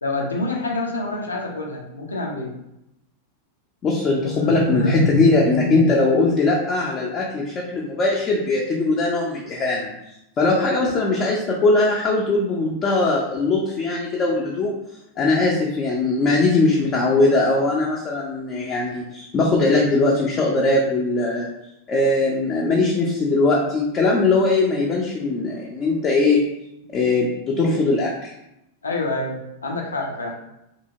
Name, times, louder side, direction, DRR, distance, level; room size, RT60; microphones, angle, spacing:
voice 1, 0.0-2.5 4.2-5.8 28.8-30.4, left 1 dB, 75° left, 0 dB, 0.5 m, -26 dB
voice 2, 3.8-9.9 10.4-14.7 15.2-21.5 21.9-26.5 26.9-28.3, left 3 dB, 30° left, -2 dB, 0.4 m, -20 dB
2.8 x 2.7 x 2.7 m, 0.86 s
figure-of-eight pair, 90°, 0 cm